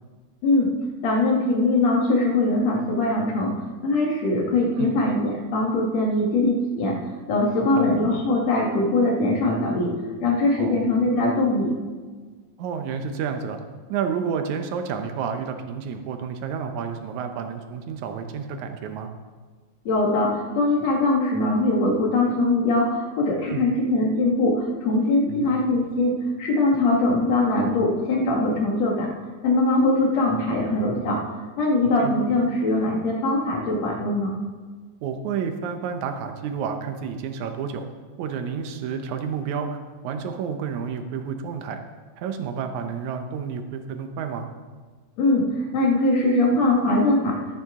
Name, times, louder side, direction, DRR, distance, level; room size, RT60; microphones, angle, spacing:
voice 1, 1.0-3.6 3.8-7.0 7.3-9.9 10.2-11.7 19.9-29.1 29.4-31.2 31.6-34.3 45.2-47.4, left 2 dB, 60° left, 0 dB, 2.7 m, -21 dB
voice 2, 12.6-13.6 13.9-19.1 23.5-23.7 25.3-25.6 32.0-32.2 35.0-37.8 38.2-41.8 42.2-44.5, right 6 dB, 70° right, 6 dB, 2.1 m, -30 dB
13.0 x 10.5 x 3.7 m, 1.4 s
omnidirectional pair, 3.7 m